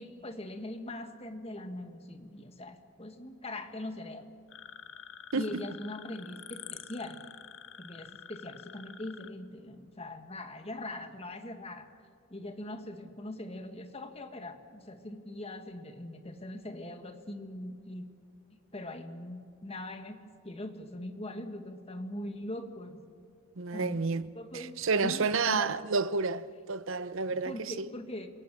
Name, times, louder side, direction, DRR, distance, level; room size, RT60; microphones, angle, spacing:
voice 1, 0.0-4.3 5.3-7.2 7.8-11.9 12.3-18.1 18.7-23.0 23.7-24.0 24.3-25.7 27.4-28.3, left 1 dB, 30° left, 1.6 m, -41 dB
sound 1, 4.5-9.3, left 8 dB, 65° left, 1.2 m, -48 dB
voice 2, 23.6-24.3 24.5-27.9, right 4 dB, 70° right, 0.8 m, -30 dB
28.0 x 18.0 x 7.6 m
head